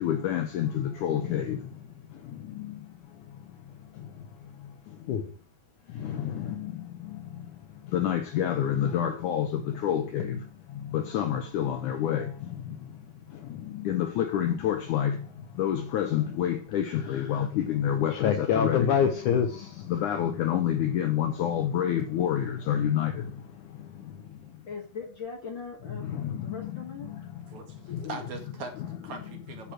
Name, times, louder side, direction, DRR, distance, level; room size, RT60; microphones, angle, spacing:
voice 1, 0.0-1.6 5.1-5.2 7.9-9.5 9.8-10.3 10.9-12.2 13.9-15.1 15.6-19.5 19.9-23.1, left 9 dB, 70° left, 2.0 m, -26 dB
voice 2, 24.7-27.1, left 5 dB, 50° left, 1.5 m, -40 dB
voice 3, 27.5-29.7, right 4 dB, 55° right, 3.1 m, -41 dB
10.0 x 6.6 x 6.1 m
omnidirectional pair, 4.3 m